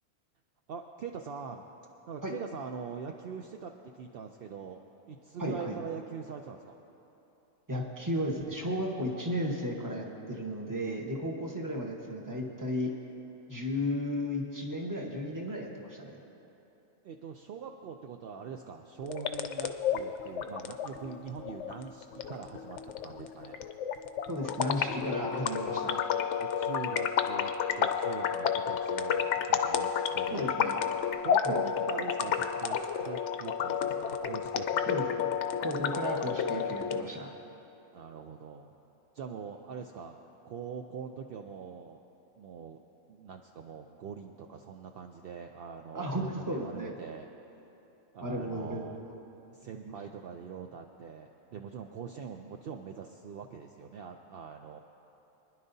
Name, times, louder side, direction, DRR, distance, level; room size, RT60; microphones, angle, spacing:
voice 1, 0.7-1.6 2.1-4.8 5.1-6.8 17.0-23.6 26.6-27.5 27.8-30.5 31.2-35.1 37.9-38.7 39.1-40.2 40.4-42.0 42.4-42.8 43.1-47.3 48.1-49.0 49.5-54.8, right 6 dB, 65° right, 4 dB, 0.6 m, -43 dB
voice 2, 5.4-5.8 7.7-12.9 13.5-16.2 24.3-26.0 30.3-30.8 31.4-31.6 34.9-35.3 35.6-37.3 45.9-46.9 48.2-49.2 49.8-49.9, equal, 15° right, -1 dB, 1.2 m, -34 dB
sound 1, 19.0-37.0, left 7 dB, 65° left, 0.8 m, -31 dB
24.0 x 10.5 x 2.7 m, 3.0 s
omnidirectional pair, 1.5 m